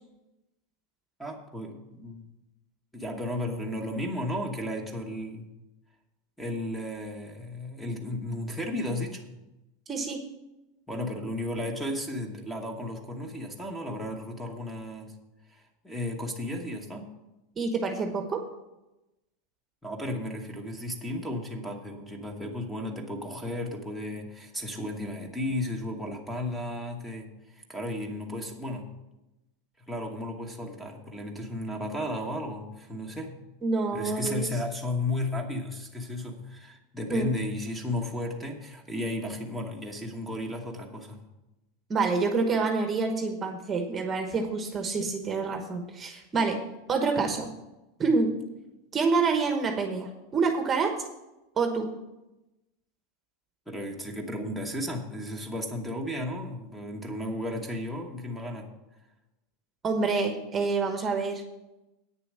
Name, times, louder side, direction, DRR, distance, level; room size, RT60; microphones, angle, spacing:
voice 1, 1.2-2.3 2.9-5.5 6.4-9.3 10.9-15.1 15.5-17.1 19.8-28.8 29.9-33.3 33.9-41.2 48.0-48.1 53.7-58.7, left 1 dB, 5° left, 3 dB, 1.1 m, -34 dB
voice 2, 9.9-10.2 17.6-18.4 33.6-34.5 37.1-37.3 41.9-46.6 46.9-47.5 48.0-48.3 48.9-50.9 51.6-51.9 59.8-61.4, right 4 dB, 20° right, 5 dB, 1.1 m, -27 dB
9.0 x 6.9 x 7.4 m, 0.98 s
supercardioid pair, 155°, 0 cm